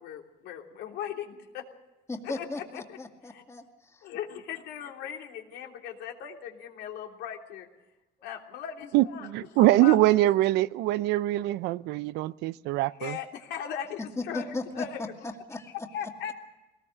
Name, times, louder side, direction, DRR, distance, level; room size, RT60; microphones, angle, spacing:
voice 1, 0.0-1.7 2.2-3.0 3.3-3.4 4.0-7.7 8.2-9.3 9.5-10.3 13.0-14.5 14.7-15.1 15.9-16.3, left 8 dB, 85° left, 3.1 m, -38 dB
voice 2, 2.1-4.1 14.2-15.7, left 2 dB, 15° left, 2.2 m, -37 dB
voice 3, 8.9-13.2, right 16 dB, 90° right, 0.6 m, -23 dB
21.0 x 19.0 x 6.7 m
cardioid pair, 110°, 17 cm